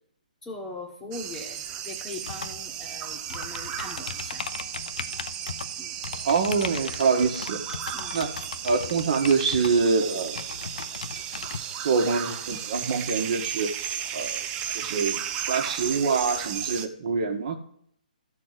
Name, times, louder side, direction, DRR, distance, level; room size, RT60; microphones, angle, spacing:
voice 1, 0.4-4.4 5.8-5.9 7.9-8.1, left 2 dB, 5° left, 0 dB, 1.3 m, -40 dB
sound 1, 1.1-16.9, right 9 dB, 15° right, 0.5 m, -34 dB
sound 2, 2.3-11.6, left 6 dB, 65° left, 0.8 m, -38 dB
voice 2, 6.2-7.6 8.1-8.3 8.6-10.4 11.8-13.7 14.1-14.4 14.7-15.2 15.5-17.6, right 5 dB, 45° right, 5 dB, 1.6 m, -25 dB
13.0 x 4.5 x 7.5 m, 0.65 s
hypercardioid pair, 165°, 5 cm